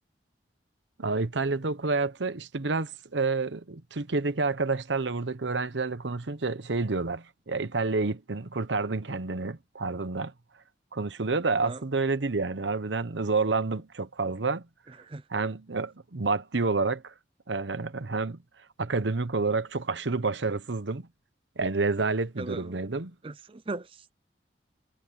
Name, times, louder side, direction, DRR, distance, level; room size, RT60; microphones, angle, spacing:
voice 1, 1.0-10.3 10.9-14.6 15.3-17.1 17.5-18.4 18.8-21.1 21.6-23.1, right 3 dB, 80° right, 1.0 m, -29 dB
voice 2, 11.5-11.8 14.9-15.2 22.4-22.8 23.2-24.1, right 2 dB, 30° right, 0.5 m, -39 dB
head